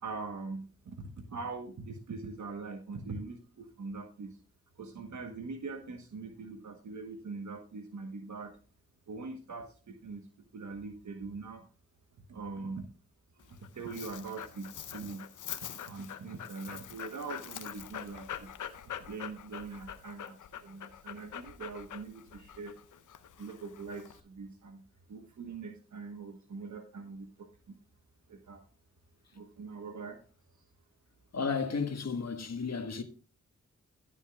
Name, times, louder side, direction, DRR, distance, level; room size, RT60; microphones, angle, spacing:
voice 1, 0.0-4.4 4.8-8.6 9.1-10.3 10.5-11.7 12.3-12.9 13.3-15.3 15.8-18.5 18.8-22.7 23.4-24.8 25.1-27.8 28.3-28.6 29.3-30.2, right 4 dB, 70° right, 1.2 m, -42 dB
Dog, 13.4-24.2, left 9 dB, 85° left, 0.7 m, -44 dB
voice 2, 31.3-33.0, left 5 dB, 60° left, 1.5 m, -33 dB
15.0 x 7.2 x 2.3 m
cardioid pair, 45°, 30 cm